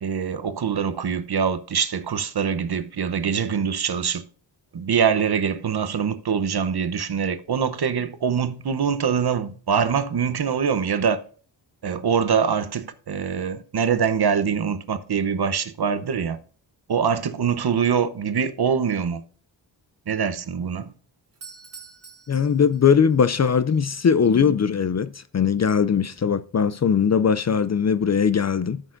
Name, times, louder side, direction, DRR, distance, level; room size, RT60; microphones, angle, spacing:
voice 1, 0.0-4.2 4.7-11.2 11.8-16.4 16.9-19.2 20.1-20.9, right 7 dB, 60° right, 0.9 m, -24 dB
Doorbell, 21.3-23.2, right 5 dB, 35° right, 1.7 m, -45 dB
voice 2, 22.3-28.8, left 6 dB, 40° left, 0.4 m, -20 dB
13.5 x 6.5 x 2.6 m
wide cardioid pair, 110°, 44 cm